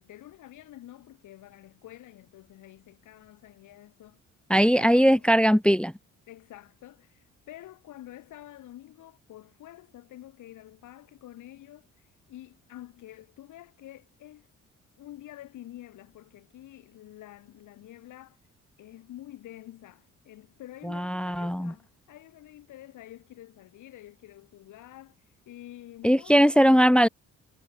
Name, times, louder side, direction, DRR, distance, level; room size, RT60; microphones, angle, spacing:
voice 1, 0.0-4.2 4.7-5.3 6.3-14.5 15.0-18.4 18.8-27.1, left 14 dB, 85° left, 5.0 m, -48 dB
voice 2, 4.5-5.9 20.9-21.7 26.0-27.1, equal, 5° left, 0.7 m, -20 dB
cardioid pair, 90°, 30 cm